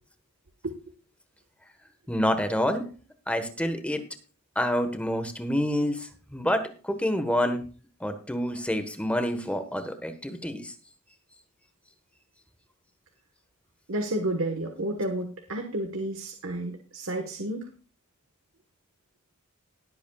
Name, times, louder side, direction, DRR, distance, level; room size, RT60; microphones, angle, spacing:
voice 1, 2.1-2.8 3.3-4.0 4.5-7.6 8.0-10.7, left 1 dB, 5° left, 8 dB, 1.3 m, -27 dB
voice 2, 13.9-17.7, right 1 dB, 70° right, 4 dB, 1.4 m, -31 dB
19.5 x 8.3 x 2.4 m, 0.37 s
head